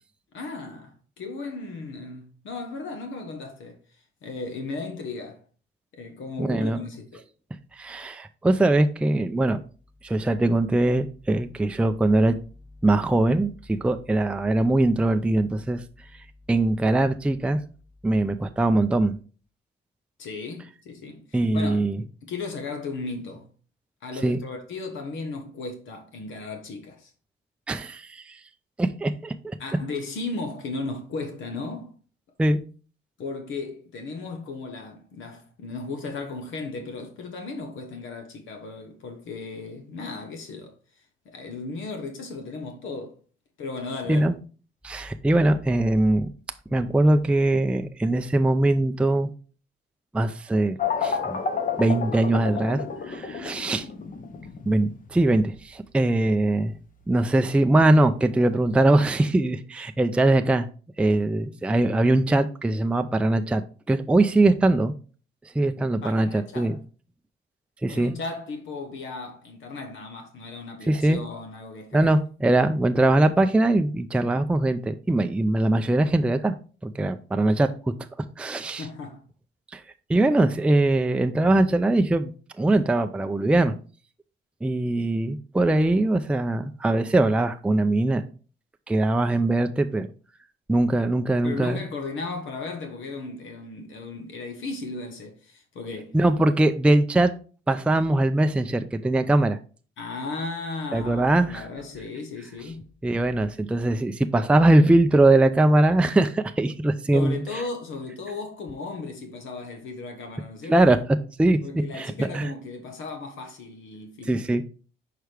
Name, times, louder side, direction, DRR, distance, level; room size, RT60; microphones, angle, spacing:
voice 1, 0.3-3.8 4.2-5.4 5.9-7.2 20.2-21.8 22.2-23.5 24.0-27.1 29.6-31.9 33.2-40.7 41.2-43.2 43.6-44.4 66.0-66.8 67.9-72.1 78.6-79.2 91.4-96.2 100.0-102.9 107.1-110.8 111.6-114.5, left 3 dB, 75° left, 1.2 m, -35 dB
voice 2, 6.4-6.8 7.8-9.6 10.0-12.4 12.8-15.8 16.5-17.6 18.0-19.2 21.3-22.0 24.2-24.4 27.7-28.4 28.8-29.5 32.4-32.6 44.1-44.3 44.8-46.3 46.7-49.3 50.1-51.4 51.8-53.9 54.7-56.7 57.1-60.7 61.0-63.6 63.9-64.9 65.5-66.8 67.8-68.1 70.9-71.2 71.9-76.5 76.8-77.7 78.4-78.9 79.7-79.8 80.1-83.8 84.6-88.3 88.9-90.1 90.7-91.8 96.1-97.3 97.7-99.6 100.9-101.7 103.0-107.4 110.7-112.5 114.3-114.6, right 2 dB, 5° right, 0.4 m, -21 dB
sound 1, 50.8-59.2, left 6 dB, 45° left, 1.0 m, -32 dB
6.2 x 4.6 x 3.4 m
cardioid pair, 90°, 20 cm